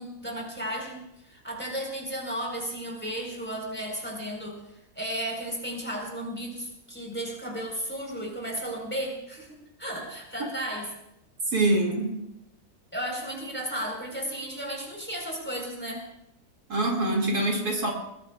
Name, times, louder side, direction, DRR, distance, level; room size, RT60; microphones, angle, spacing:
voice 1, 0.0-4.6 5.0-10.9 12.9-16.1, equal, 5° left, -1 dB, 4.3 m, -34 dB
voice 2, 11.5-12.2 16.7-17.9, right 2 dB, 70° right, 0 dB, 3.0 m, -24 dB
21.0 x 21.0 x 2.4 m, 0.82 s
omnidirectional pair, 1.7 m